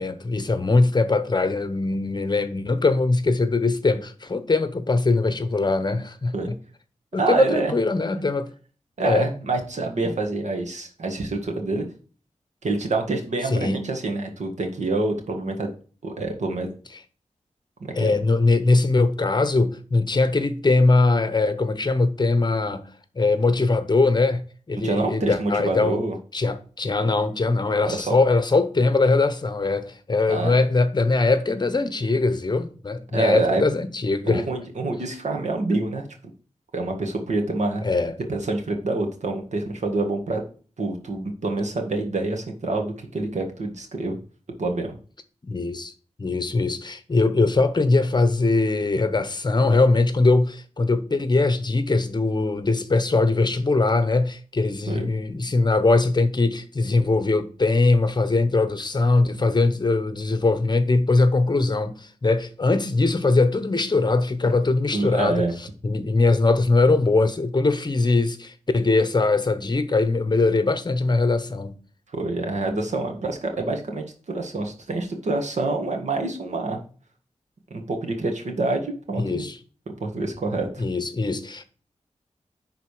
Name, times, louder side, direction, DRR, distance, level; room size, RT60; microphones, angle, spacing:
voice 1, 0.0-6.3 7.1-8.5 9.0-9.3 10.0-10.1 13.5-13.9 18.0-22.9 23.2-24.4 24.7-26.0 26.3-34.5 37.8-38.2 45.4-45.9 46.2-65.4 65.8-71.8 79.2-79.6 80.8-81.6, left 3 dB, 35° left, 0.9 m, -21 dB
voice 2, 7.2-7.7 9.0-11.9 12.6-15.7 16.0-16.7 17.8-18.1 24.8-26.2 27.9-28.2 30.3-30.5 33.1-33.6 34.2-36.1 36.7-37.8 38.3-40.4 40.8-44.2 44.6-45.0 54.9-55.1 64.9-65.5 72.1-76.8 77.7-79.4 80.0-80.8, right 2 dB, 75° right, 1.8 m, -26 dB
10.5 x 3.9 x 4.9 m
wide cardioid pair, 100°, 12 cm